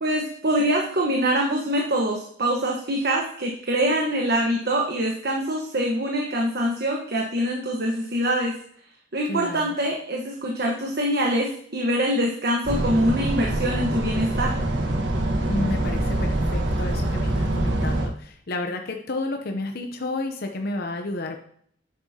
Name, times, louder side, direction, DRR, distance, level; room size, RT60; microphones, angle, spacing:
voice 1, 0.0-8.6 9.1-14.6, right 1 dB, 60° right, -1 dB, 1.2 m, -24 dB
voice 2, 9.2-9.8 15.5-21.4, left 2 dB, 55° left, 4 dB, 0.8 m, -31 dB
sound 1, 12.7-18.1, right 1 dB, 85° right, 1.3 m, -24 dB
10.0 x 7.7 x 2.9 m, 0.62 s
head